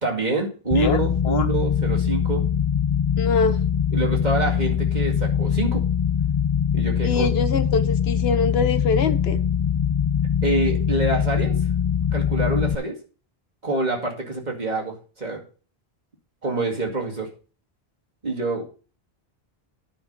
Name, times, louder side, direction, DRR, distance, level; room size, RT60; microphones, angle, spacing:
voice 1, 0.0-2.4 3.9-5.8 6.7-7.3 10.4-11.6 12.1-13.0 13.6-15.4 16.4-17.3 18.2-18.6, right 2 dB, 45° right, 0 dB, 2.4 m, -26 dB
sound 1, 0.7-12.8, left 8 dB, 40° left, 0.4 m, -22 dB
voice 2, 3.2-3.6 7.0-9.4, left 5 dB, 75° left, 11 dB, 1.1 m, -23 dB
10.0 x 6.0 x 5.4 m, 0.37 s
omnidirectional pair, 1.1 m